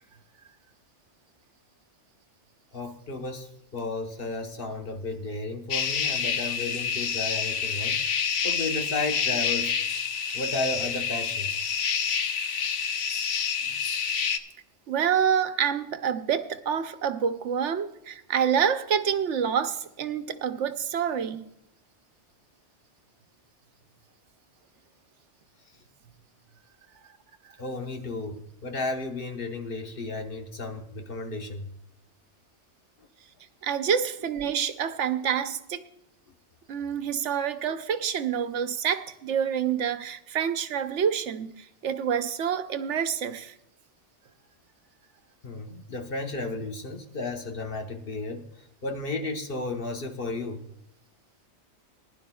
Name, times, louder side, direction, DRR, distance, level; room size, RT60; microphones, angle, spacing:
voice 1, 2.7-9.7 10.3-11.6 27.6-31.7 45.4-48.4 48.8-50.6, left 2 dB, 50° left, 1.3 m, -33 dB
sound 1, 5.7-14.4, left 6 dB, 90° left, 1.1 m, -28 dB
voice 2, 14.9-21.5 33.6-35.8 36.7-43.5, right 8 dB, 80° right, 1.0 m, -27 dB
20.0 x 11.0 x 2.3 m
omnidirectional pair, 1.2 m